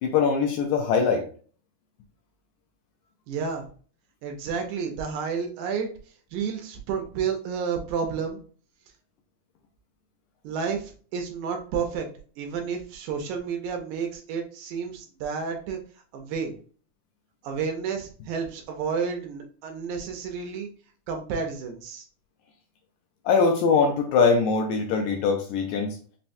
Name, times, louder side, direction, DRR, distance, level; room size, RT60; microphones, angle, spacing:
voice 1, 0.0-1.2 23.3-26.0, left 5 dB, 80° left, 3 dB, 1.8 m, -22 dB
voice 2, 3.3-3.7 4.2-5.9 6.3-8.4 10.4-12.1 12.4-15.8 16.1-16.5 17.4-20.7 21.1-22.1, right 6 dB, 80° right, 3 dB, 1.9 m, -31 dB
5.6 x 2.1 x 2.6 m, 0.42 s
omnidirectional pair, 3.7 m